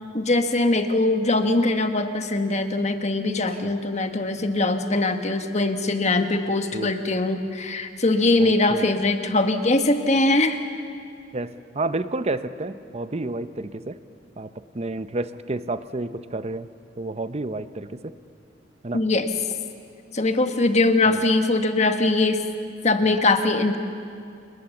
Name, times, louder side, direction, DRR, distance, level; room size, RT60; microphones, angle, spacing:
voice 1, 0.1-10.6 18.9-19.3 20.1-22.4 22.8-23.8, left 2 dB, 40° left, 7 dB, 1.3 m, -22 dB
voice 2, 8.4-8.8 11.3-14.0 14.4-16.7 17.0-18.0 18.8-19.0 21.1-21.2, right 2 dB, 35° right, 12 dB, 0.8 m, -30 dB
27.0 x 21.0 x 7.2 m, 2.4 s
head